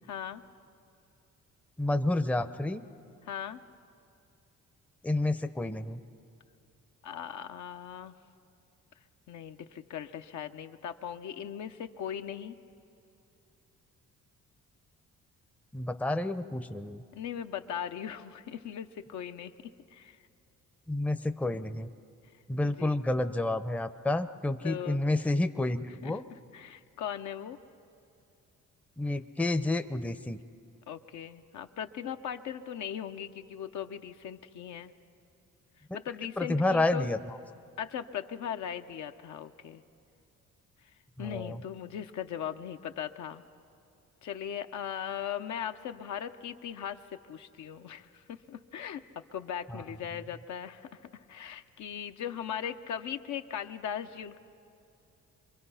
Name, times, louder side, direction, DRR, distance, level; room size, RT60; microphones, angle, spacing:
voice 1, 0.1-0.4 3.3-3.6 7.0-8.1 9.3-12.6 17.1-20.2 22.6-23.0 24.6-25.0 26.0-26.1 26.5-27.6 30.9-34.9 35.9-37.1 37.8-39.8 41.2-43.4 44.2-47.0 47.3-49.0 49.3-50.9 51.3-54.4, left 9 dB, 70° left, 6 dB, 0.9 m, -39 dB
voice 2, 1.8-2.8 5.0-6.0 15.7-17.0 20.9-21.9 22.5-26.2 29.0-30.4 36.4-37.4 41.2-41.6 49.7-49.8, left 2 dB, 5° left, 9 dB, 0.6 m, -30 dB
25.5 x 23.0 x 5.6 m, 2.6 s
cardioid pair, 90°, 30 cm